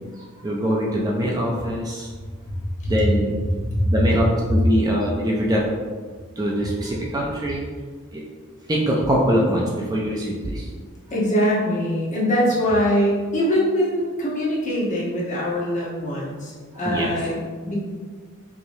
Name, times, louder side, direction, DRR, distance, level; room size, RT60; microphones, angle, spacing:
voice 1, 0.2-2.1 2.9-3.4 3.9-5.6 6.4-7.6 8.1-8.2 8.7-10.7 16.8-17.1, equal, 15° right, -3 dB, 0.4 m, -23 dB
voice 2, 3.7-4.0 11.1-17.4 17.6-17.8, equal, 35° left, -5 dB, 1.0 m, -22 dB
4.8 x 2.9 x 2.6 m, 1.6 s
head